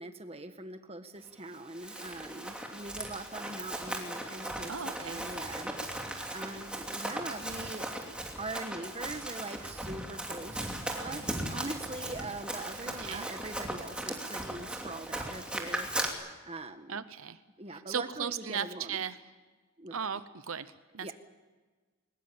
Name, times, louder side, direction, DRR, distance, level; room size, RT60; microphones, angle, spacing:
voice 1, 0.0-5.7 6.3-7.9 8.4-15.9 16.4-17.0 17.6-19.0 19.8-20.2 21.0-21.1, right 2 dB, 25° right, 8 dB, 1.4 m, -42 dB
Run, 1.5-16.1, right 1 dB, 5° right, 2.7 m, -38 dB
voice 2, 4.7-5.3 12.9-13.3 16.9-17.4 17.7-19.2 19.9-21.1, right 7 dB, 70° right, 13 dB, 0.8 m, -37 dB
22.0 x 20.5 x 8.7 m, 1.3 s
head